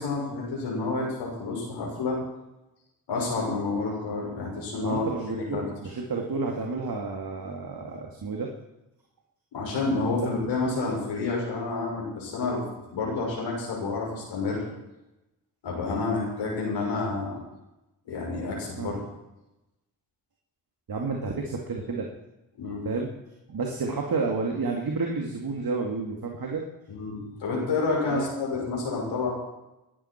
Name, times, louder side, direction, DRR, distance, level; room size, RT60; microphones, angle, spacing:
voice 1, 0.0-2.2 3.1-5.6 9.5-12.6 12.9-14.6 15.6-17.4 18.1-19.0 22.6-22.9 26.9-29.3, left 3 dB, 75° left, -3 dB, 6.4 m, -29 dB
voice 2, 4.8-8.5 18.8-19.0 20.9-22.1 22.8-23.1 23.5-26.6 28.1-28.2, right 4 dB, 50° right, 1 dB, 2.6 m, -30 dB
20.5 x 12.0 x 4.6 m, 0.96 s
hypercardioid pair, 40°, 46 cm